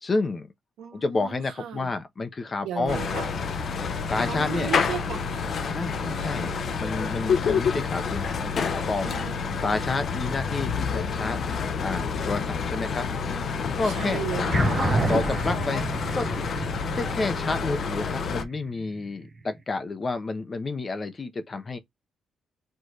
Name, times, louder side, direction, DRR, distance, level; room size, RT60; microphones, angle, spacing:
voice 1, 0.0-0.5 0.9-3.1 4.1-4.7 5.7-6.5 6.8-9.1 9.6-11.4 11.8-13.1 13.8-14.2 14.8-16.3 16.9-21.8, left 3 dB, 35° left, 0.9 m, -30 dB
voice 2, 0.8-1.9 2.6-3.3 4.3-6.7 9.0-9.4 13.8-14.7, right 9 dB, 85° right, 1.4 m, -36 dB
sound 1, 2.9-18.4, left 5 dB, 55° left, 0.6 m, -28 dB
sound 2, 14.5-19.3, right 3 dB, 35° right, 0.9 m, -30 dB
4.5 x 3.1 x 3.1 m
cardioid pair, 90°, 0 cm